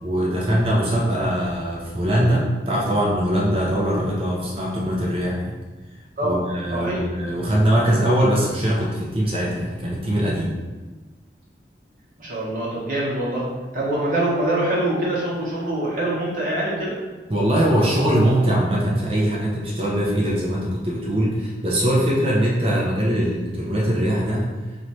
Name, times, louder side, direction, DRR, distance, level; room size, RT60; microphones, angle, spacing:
voice 1, 0.0-5.5 6.2-10.6 17.3-24.5, equal, 30° right, -4 dB, 0.7 m, -21 dB
voice 2, 6.7-7.0 12.2-13.4 13.7-17.0, right 1 dB, 50° right, -6 dB, 1.2 m, -24 dB
3.1 x 3.1 x 4.2 m, 1.3 s
head